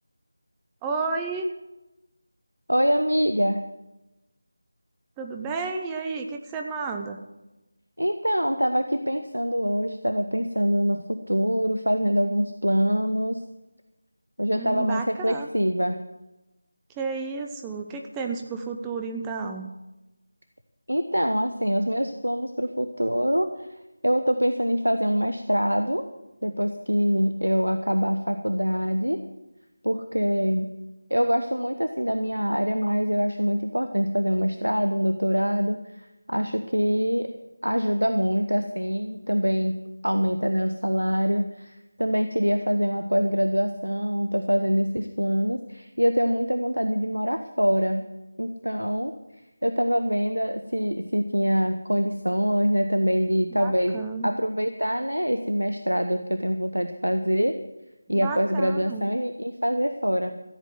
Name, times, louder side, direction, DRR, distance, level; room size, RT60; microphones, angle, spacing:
voice 1, 0.8-1.5 5.2-7.2 14.5-15.5 17.0-19.7 53.5-54.3 58.1-59.1, right 4 dB, 10° right, 3 dB, 0.7 m, -32 dB
voice 2, 2.7-3.7 8.0-13.4 14.4-16.0 20.9-23.7 24.0-26.0 26.4-29.2 29.8-30.7 31.1-37.3 37.6-39.8 40.0-48.1 48.4-49.1 49.6-57.5 58.1-60.3, equal, 90° right, 8 dB, 1.0 m, -24 dB
14.5 x 8.3 x 7.8 m, 0.99 s
figure-of-eight pair, 165°, 0 cm